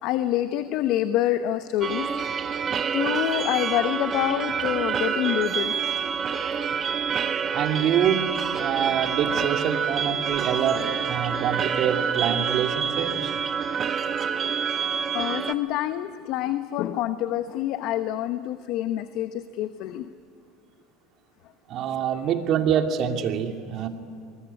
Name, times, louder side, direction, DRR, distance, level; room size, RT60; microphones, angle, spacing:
voice 1, 0.0-2.1 2.5-5.8 13.1-13.2 14.3-14.7 15.1-20.1 22.0-22.3, left 13 dB, 60° left, 10 dB, 1.0 m, -27 dB
sound 1, 1.8-15.5, right 7 dB, 35° right, 1.4 m, -27 dB
voice 2, 7.5-8.3 8.6-13.3 21.7-23.9, right 9 dB, 50° right, 5 dB, 2.5 m, -25 dB
25.5 x 21.0 x 9.8 m, 2.2 s
supercardioid pair, 95°, 0 cm